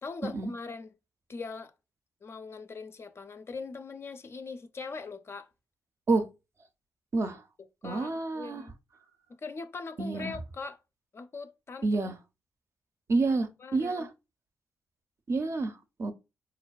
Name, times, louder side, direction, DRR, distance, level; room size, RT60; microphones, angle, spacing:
voice 1, 0.0-0.9 1.3-1.7 2.2-5.5 7.8-8.7 9.3-10.8 11.1-12.1 13.6-14.1, left 4 dB, 40° left, 0.4 m, -41 dB
voice 2, 7.1-7.4 7.8-8.6 10.0-10.3 11.8-12.2 13.1-14.1 15.3-16.1, right 3 dB, 45° right, 0.5 m, -29 dB
4.2 x 2.2 x 2.3 m
hypercardioid pair, 45°, 6 cm